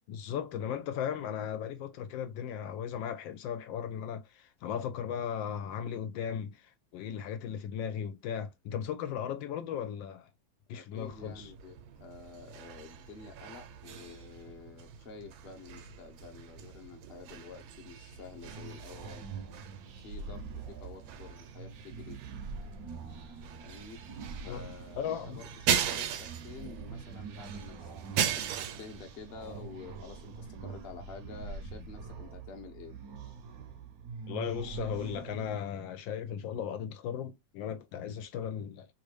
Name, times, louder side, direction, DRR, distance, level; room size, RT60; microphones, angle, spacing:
voice 1, 0.1-10.3 10.7-11.5 24.5-24.6 24.9-25.4 34.3-38.9, left 8 dB, 75° left, 1.3 m, -36 dB
voice 2, 10.7-19.3 20.0-22.2 23.6-24.0 24.4-28.5 28.8-33.0, left 5 dB, 45° left, 0.8 m, -49 dB
sound 1, 11.0-30.6, right 8 dB, 85° right, 1.4 m, -39 dB
sound 2, 18.1-35.6, right 4 dB, 65° right, 0.9 m, -44 dB
3.3 x 2.5 x 3.1 m
omnidirectional pair, 2.1 m